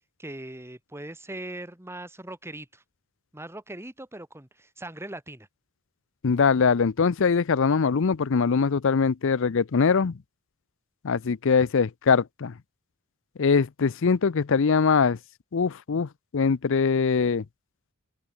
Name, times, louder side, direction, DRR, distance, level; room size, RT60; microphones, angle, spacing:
voice 1, 0.2-2.8 3.3-5.5, right 1 dB, 10° right, 1.9 m, -40 dB
voice 2, 6.2-10.2 11.0-12.5 13.4-15.2 15.5-17.4, left 5 dB, 65° left, 0.5 m, -22 dB
open air
head